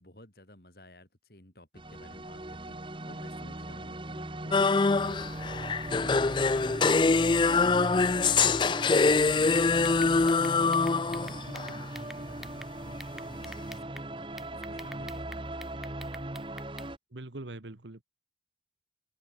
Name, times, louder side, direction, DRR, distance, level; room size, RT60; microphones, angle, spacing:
voice 1, 0.0-15.6, left 1 dB, 55° left, 6.7 m, -54 dB
sound 1, 1.8-17.0, right 1 dB, 30° right, 1.5 m, -39 dB
sound 2, 4.5-11.8, left 4 dB, 25° left, 0.4 m, -24 dB
sound 3, 9.5-12.7 13.0-14.1 14.4-16.9, equal, ahead, 1.7 m, -47 dB
voice 2, 17.1-18.0, right 2 dB, 85° right, 1.5 m, -42 dB
head